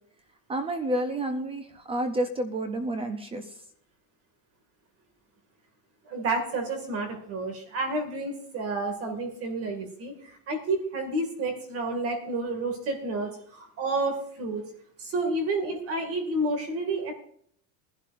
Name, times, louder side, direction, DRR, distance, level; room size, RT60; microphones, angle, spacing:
voice 1, 0.5-3.5, right 1 dB, 15° right, 8 dB, 0.5 m, -30 dB
voice 2, 6.1-14.6 15.0-17.1, right 2 dB, 30° right, 4 dB, 2.1 m, -30 dB
21.0 x 11.5 x 2.5 m, 0.63 s
cardioid pair, 175°, 44 cm